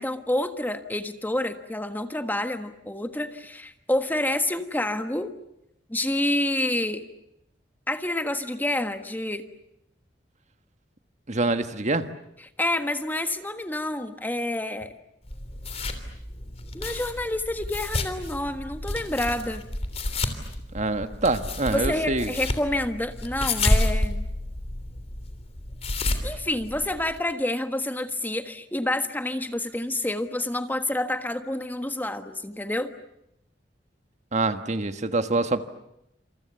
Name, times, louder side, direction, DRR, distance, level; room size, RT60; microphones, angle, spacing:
voice 1, 0.0-5.3 5.9-7.0 7.9-9.5 12.6-14.9 16.7-19.6 21.7-24.3 26.2-32.9, left 1 dB, 10° left, 8 dB, 1.5 m, -28 dB
voice 2, 11.3-12.0 20.7-22.3 34.3-35.6, right 2 dB, 40° right, 9 dB, 1.5 m, -25 dB
sound 1, 15.3-27.2, left 2 dB, 35° left, 3.3 m, -30 dB
28.5 x 27.5 x 6.9 m, 0.79 s
head